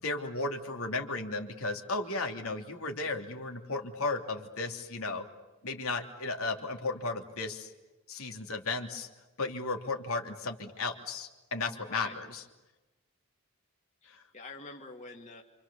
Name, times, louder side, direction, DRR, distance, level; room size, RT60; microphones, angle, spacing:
voice 1, 0.0-5.2 5.6-7.7 8.1-9.1 9.4-12.4 14.1-14.2, left 3 dB, 75° left, 3 dB, 3.2 m, -35 dB
voice 2, 11.9-12.2 14.0-15.4, left 3 dB, 30° left, 1 dB, 2.3 m, -46 dB
28.5 x 27.5 x 7.1 m, 1.1 s
head